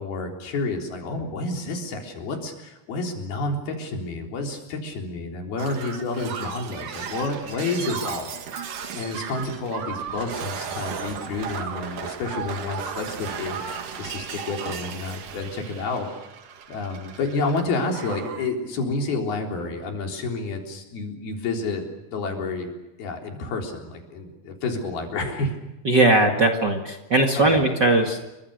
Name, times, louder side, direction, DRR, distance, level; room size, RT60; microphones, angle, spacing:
voice 1, 0.0-16.1 16.7-22.7 23.0-25.6 27.4-27.6, left 3 dB, 80° left, 2 dB, 5.7 m, -30 dB
Shatter, 5.6-17.6 17.9-18.5 19.5-19.7, right 7 dB, 60° right, 3.3 m, -35 dB
voice 2, 25.8-28.2, right 2 dB, 35° right, 3 dB, 2.0 m, -19 dB
29.0 x 24.5 x 6.6 m, 0.98 s
omnidirectional pair, 4.3 m